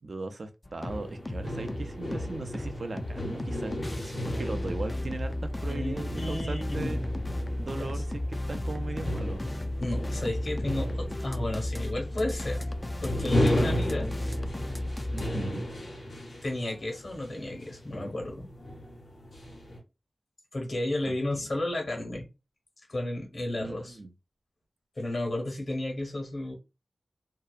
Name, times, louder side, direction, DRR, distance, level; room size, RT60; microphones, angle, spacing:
voice 1, 0.0-7.0 7.6-8.2 8.5-9.4 15.1-15.7 23.6-24.1, right 3 dB, 70° right, 0.4 m, -38 dB
sound 1, 0.6-15.3, left 1 dB, 30° left, 0.3 m, -34 dB
sound 2, 0.9-19.8, left 1 dB, 85° left, 1.2 m, -35 dB
voice 2, 5.7-7.3 7.8-7.9 9.8-12.7 13.0-14.2 16.4-18.5 20.5-22.3 22.9-24.0 25.0-26.6, left 1 dB, 65° left, 1.2 m, -33 dB
2.7 x 2.1 x 2.3 m
wide cardioid pair, 55°, 0 cm